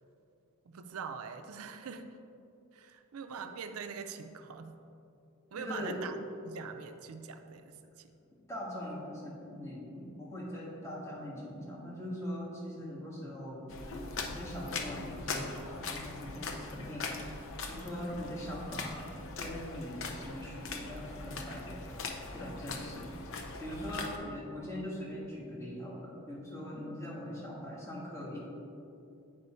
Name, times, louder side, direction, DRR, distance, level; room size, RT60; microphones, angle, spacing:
voice 1, 0.7-2.1 2.7-4.8 5.5-6.1 6.4-8.1 23.0-23.1, right 6 dB, 75° right, 7 dB, 0.5 m, -43 dB
voice 2, 5.5-6.0 8.3-13.6 14.2-17.4 17.7-19.0 19.4-21.8 22.3-23.1 23.6-28.4, left 1 dB, 15° left, -6 dB, 1.7 m, -41 dB
sound 1, 13.7-24.2, left 3 dB, 60° left, 0.7 m, -41 dB
8.1 x 5.0 x 4.3 m, 2.7 s
head